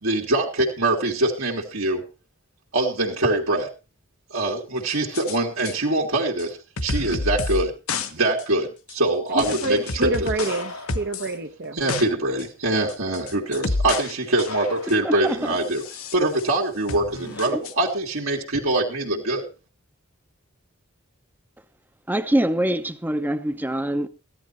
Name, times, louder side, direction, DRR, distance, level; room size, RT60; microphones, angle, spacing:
voice 1, 0.0-2.0 2.7-3.7 4.3-7.7 8.1-10.6 11.7-15.8 16.1-19.5, right 2 dB, 75° right, 2.1 m, -24 dB
sound 1, 4.9-5.4 5.6-5.7 6.4-6.5 6.8-7.6 7.9-8.1 8.4-8.5 8.9-9.0 9.4-11.3 11.6-12.0 12.4-12.5 12.9-14.1 14.4-15.0 15.7-16.5 16.9-17.7, left 3 dB, 85° left, 1.3 m, -30 dB
voice 2, 9.3-11.8, right 2 dB, 50° right, 0.8 m, -27 dB
voice 3, 15.0-15.5 17.5-17.6 22.1-24.1, right 1 dB, 10° right, 0.7 m, -24 dB
14.5 x 11.0 x 4.4 m
head